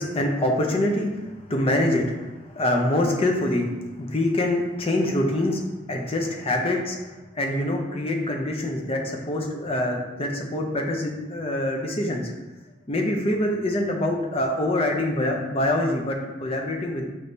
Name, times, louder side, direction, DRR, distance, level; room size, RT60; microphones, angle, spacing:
voice 1, 0.0-2.3 2.5-3.7 4.0-5.6 5.9-7.1 7.4-12.3 12.9-17.1, left 1 dB, 30° left, 1 dB, 0.6 m, -25 dB
6.2 x 3.2 x 2.7 m, 1.1 s
head